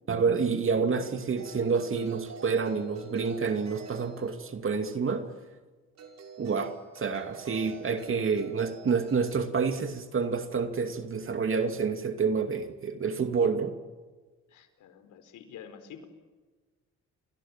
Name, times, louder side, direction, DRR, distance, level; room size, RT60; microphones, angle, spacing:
voice 1, 0.1-5.3 6.4-13.8, right 5 dB, 45° right, 7 dB, 2.5 m, -28 dB
sound 1, 1.4-4.7 5.9-9.4, right 6 dB, 60° right, 5.9 m, -48 dB
voice 2, 14.5-16.0, left 8 dB, 85° left, 9 dB, 4.6 m, -48 dB
29.5 x 24.0 x 7.4 m, 1.3 s
cardioid pair, 90°, 30 cm